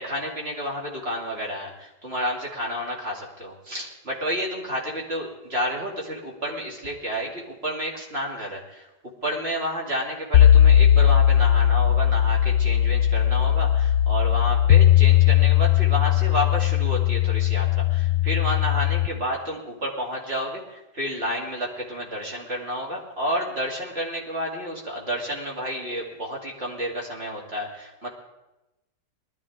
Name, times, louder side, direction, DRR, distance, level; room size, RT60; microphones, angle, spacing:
voice 1, 0.0-8.9 9.2-28.1, equal, 35° right, -2 dB, 3.0 m, -30 dB
sound 1, 10.3-19.1, left 11 dB, 65° left, 1.2 m, -18 dB
20.0 x 13.0 x 3.7 m, 0.98 s
omnidirectional pair, 1.7 m